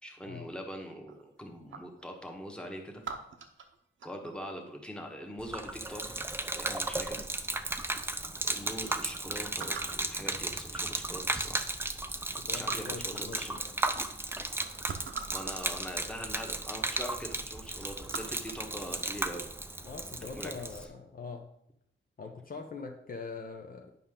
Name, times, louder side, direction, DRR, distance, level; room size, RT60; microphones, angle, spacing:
voice 1, 0.0-3.0 4.0-6.2 6.5-7.2 8.4-11.6 11.9-12.0 12.3-13.6 15.3-19.5 20.2-20.9, equal, 5° left, 2 dB, 1.2 m, -42 dB
sound 1, 1.1-2.0 3.0-4.5 6.1-6.5 7.2-7.3 7.5-8.1 8.5-8.6 8.9-9.0 9.6-10.1 11.0-11.1 11.6-12.4 12.7-13.1 14.0-14.1 14.5-15.5 16.4-16.5 16.8-17.1 17.4-18.7 19.2-19.4, right 5 dB, 70° right, 0.8 m, -44 dB
Gurgling / Liquid, 5.4-20.8, right 2 dB, 10° right, 0.4 m, -35 dB
voice 2, 12.4-13.7 19.8-21.5 22.2-23.9, left 4 dB, 45° left, 2 dB, 0.7 m, -43 dB
9.3 x 5.5 x 3.7 m, 0.75 s
wide cardioid pair, 125°, 21 cm